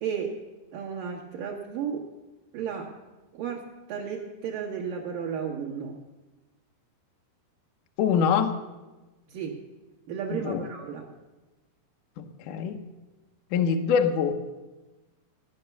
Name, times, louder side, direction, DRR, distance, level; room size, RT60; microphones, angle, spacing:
voice 1, 0.0-0.4 0.7-2.1 2.5-3.0 3.3-6.0 9.3-9.6 10.1-11.1, right 7 dB, 60° right, -4 dB, 2.6 m, -33 dB
voice 2, 8.0-8.6 10.3-10.6 12.2-12.8 13.5-14.4, left 7 dB, 80° left, 5 dB, 1.9 m, -24 dB
16.0 x 9.8 x 6.9 m, 1.1 s
omnidirectional pair, 4.8 m